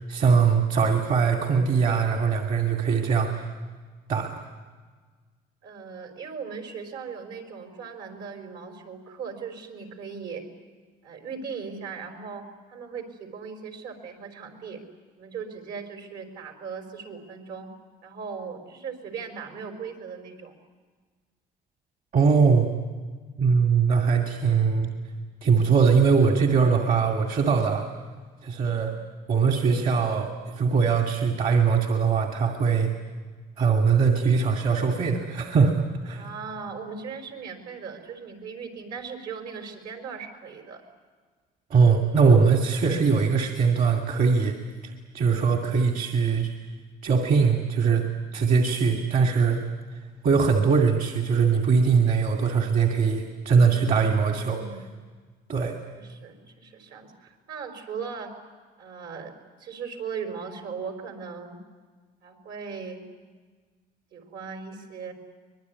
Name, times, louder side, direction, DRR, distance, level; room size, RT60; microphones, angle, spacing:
voice 1, 0.1-3.5 4.1-4.4 22.1-22.7 23.4-24.9 25.4-27.9 28.4-28.9 29.3-32.9 33.6-36.2 41.7-44.6 44.8-46.5 47.0-48.0 48.3-49.6 50.2-54.6 55.5-55.7, right 5 dB, 55° right, 3 dB, 2.4 m, -21 dB
voice 2, 5.6-10.4 11.0-12.4 12.7-14.8 15.2-17.7 18.0-20.5 28.8-29.0 36.1-40.8 53.6-54.1 54.5-54.9 55.9-58.3 58.8-59.3 59.6-61.6 62.2-63.0 64.1-65.1, right 6 dB, 80° right, 4 dB, 5.0 m, -38 dB
24.5 x 21.0 x 9.6 m, 1.5 s
cardioid pair, 110°, 17 cm